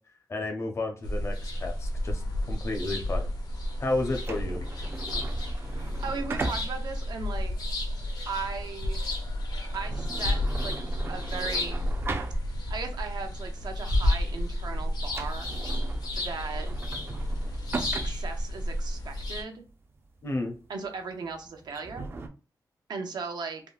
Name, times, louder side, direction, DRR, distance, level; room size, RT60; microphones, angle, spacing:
voice 1, 0.3-2.2 2.5-3.3 3.8-4.6 20.2-20.5, left 2 dB, 40° left, 3 dB, 0.6 m, -31 dB
sound 1, 1.0-19.4, left 1 dB, 70° left, 0.8 m, -31 dB
sound 2, 3.9-12.9 13.3-13.4 14.0-14.3 14.6-14.7 15.0-22.3, right 3 dB, 35° right, 0.4 m, -38 dB
voice 2, 6.0-7.5 8.3-9.2 9.7-10.8 11.1-11.8 12.7-15.5 16.2-16.7 17.8-19.6 20.7-22.0 22.9-23.6, right 4 dB, 80° right, 5 dB, 0.6 m, -37 dB
3.5 x 2.0 x 2.4 m, 0.35 s
wide cardioid pair, 170°, 7 cm